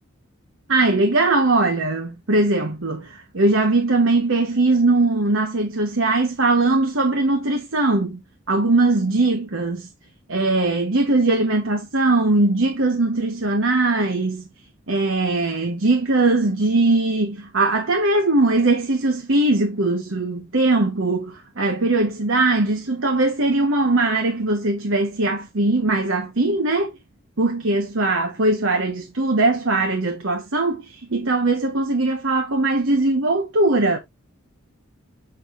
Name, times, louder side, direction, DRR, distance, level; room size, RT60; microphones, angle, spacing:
voice 1, 0.7-8.2 8.5-9.8 10.3-14.4 14.9-26.9 27.4-34.0, right 2 dB, 75° right, 1.1 m, -20 dB
6.5 x 6.4 x 2.5 m
head